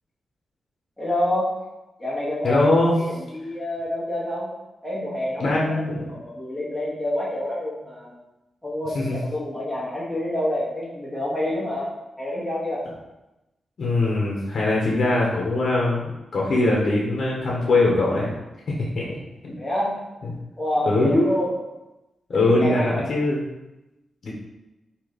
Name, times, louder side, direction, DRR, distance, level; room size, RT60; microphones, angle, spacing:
voice 1, 1.0-1.7 2.0-4.5 4.8-8.1 8.6-12.9 19.6-20.0 20.6-21.5 22.3-23.1, left 1 dB, 5° left, -7 dB, 1.0 m, -27 dB
voice 2, 2.4-2.9 5.4-6.1 8.9-9.2 13.8-18.3 18.7-19.2 19.4-19.5 20.9-21.3 22.3-23.4 24.2-24.3, left 2 dB, 55° left, -3 dB, 0.9 m, -21 dB
3.8 x 2.9 x 4.8 m, 0.97 s
wide cardioid pair, 150°, 0 cm